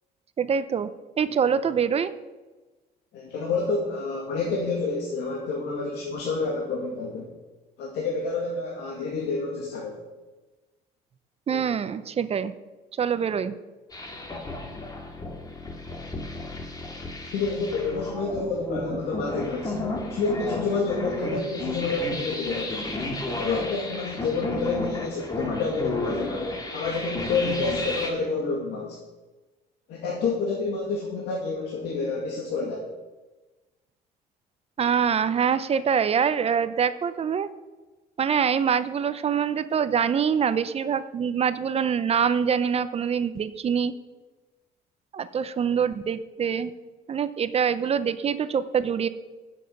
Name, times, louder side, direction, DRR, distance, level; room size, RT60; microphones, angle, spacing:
voice 1, 0.4-0.9 1.2-2.1 11.5-12.5 13.0-13.5 34.8-37.5 38.2-43.9 45.1-46.7 47.1-49.1, right 7 dB, 35° right, 13 dB, 0.7 m, -24 dB
voice 2, 3.1-7.3 7.8-10.0 11.5-11.6 17.3-22.8 23.3-29.0 29.9-32.9, left 3 dB, 80° left, -2 dB, 2.3 m, -29 dB
sound 1, 13.9-28.1, left 2 dB, 20° left, 2.0 m, -33 dB
10.0 x 7.5 x 6.6 m, 1.2 s
cardioid pair, 110°, 17 cm